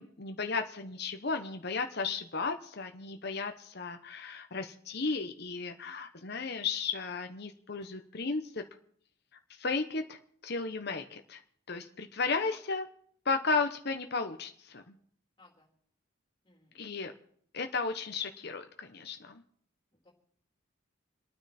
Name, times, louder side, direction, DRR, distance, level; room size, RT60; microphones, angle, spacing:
voice 1, 0.0-8.6 9.6-11.4 11.7-12.9 13.2-15.0 16.7-17.1 17.5-19.4, left 4 dB, 50° left, 6 dB, 0.9 m, -34 dB
voice 2, 15.4-15.7 16.4-16.8 19.9-20.1, left 2 dB, 20° left, -1 dB, 3.6 m, -61 dB
28.5 x 9.5 x 4.3 m, 0.62 s
head